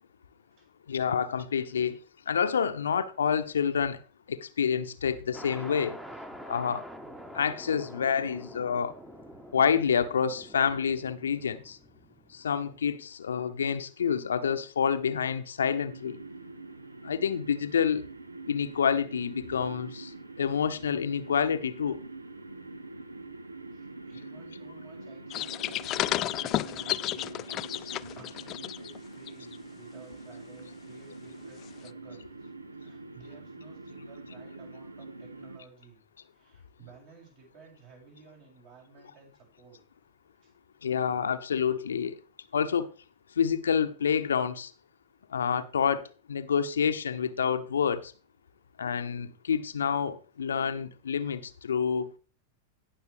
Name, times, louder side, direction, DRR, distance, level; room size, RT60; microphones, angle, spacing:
voice 1, 0.9-2.0 2.3-4.0 4.3-6.0 6.5-6.8 7.3-9.0 9.5-11.8 12.3-16.2 17.0-18.0 18.5-20.1 20.4-22.0 40.8-42.1 42.5-42.9 43.4-44.7 45.3-48.1 48.8-52.1, left 7 dB, 70° left, 0.8 m, -28 dB
sound 1, 5.3-12.9, equal, 5° right, 1.3 m, -46 dB
sound 2, 15.9-35.6, right 3 dB, 80° right, 0.8 m, -45 dB
voice 2, 23.7-36.0 36.3-39.8 40.4-40.5, right 5 dB, 50° right, 6.9 m, -55 dB
sound 3, 25.3-29.0 29.3-29.6 31.9-32.0, left 15 dB, 35° left, 0.4 m, -32 dB
17.5 x 6.2 x 3.4 m
figure-of-eight pair, 90°, 0 cm